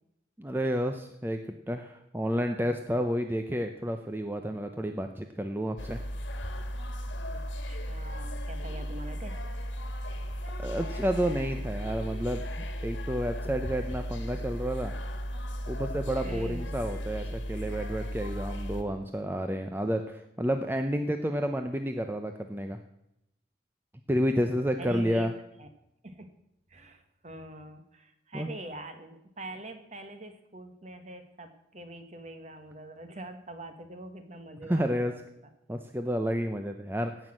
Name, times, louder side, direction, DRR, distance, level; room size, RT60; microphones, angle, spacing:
voice 1, 0.4-1.4 1.7-6.0 10.6-14.9 15.7-22.8 24.1-25.3 28.3-28.5 34.6-35.1 35.7-37.3, equal, 10° right, 6 dB, 0.6 m, -30 dB
sound 1, 5.8-18.8, equal, 85° left, 1.7 m, -35 dB
voice 2, 7.3-9.4 16.2-16.6 17.6-17.7 24.8-25.3 25.6-25.7 26.0-26.3 26.7-35.0, right 1 dB, 40° right, 7 dB, 1.5 m, -44 dB
16.5 x 6.2 x 7.7 m, 0.84 s
head